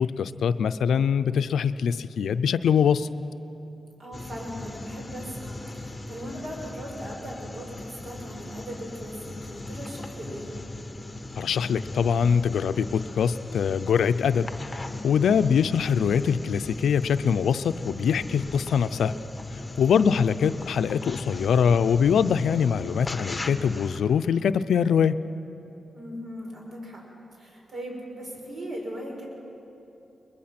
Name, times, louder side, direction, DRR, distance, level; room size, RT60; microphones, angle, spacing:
voice 1, 0.0-3.1 11.4-14.5 15.0-19.1 19.8-25.1, left 7 dB, 90° left, 12 dB, 0.5 m, -23 dB
voice 2, 4.0-10.5 19.8-20.3 25.9-27.0 27.4-29.3, equal, 55° right, -1 dB, 5.6 m, -39 dB
sound 1, 4.1-24.0, left 2 dB, 25° left, 1.2 m, -38 dB
21.5 x 21.5 x 6.0 m, 3.0 s
cardioid pair, 70°, 0 cm